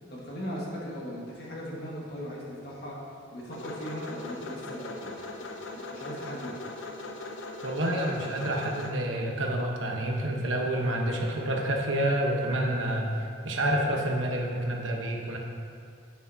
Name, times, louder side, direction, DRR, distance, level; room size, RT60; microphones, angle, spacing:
voice 1, 0.1-3.0 3.3-5.1 5.4-6.6, equal, 55° left, -4 dB, 1.8 m, -38 dB
sound 1, 3.5-8.9, left 2 dB, 85° left, 0.8 m, -40 dB
voice 2, 7.6-15.4, right 1 dB, 90° right, 0 dB, 1.1 m, -28 dB
11.0 x 8.3 x 2.8 m, 2.4 s
head